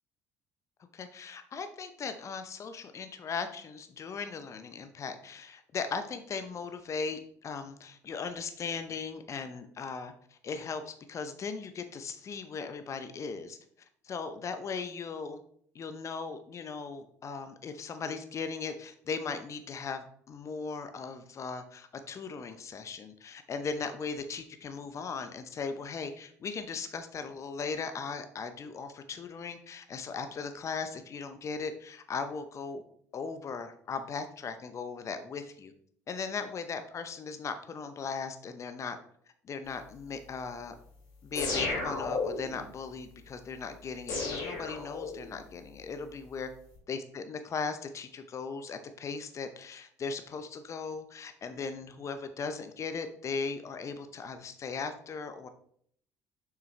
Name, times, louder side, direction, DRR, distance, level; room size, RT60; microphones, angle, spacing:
voice 1, 0.9-13.6 14.0-15.4 15.7-32.8 33.1-35.7 36.1-39.0 39.4-40.7 41.2-46.5 46.9-55.5, left 5 dB, 40° left, 9 dB, 0.8 m, -38 dB
sound 1, 41.4-42.6 44.1-45.4, left 3 dB, 65° left, 3.1 m, -33 dB
7.2 x 5.9 x 3.3 m, 0.64 s
hypercardioid pair, 55°, 8 cm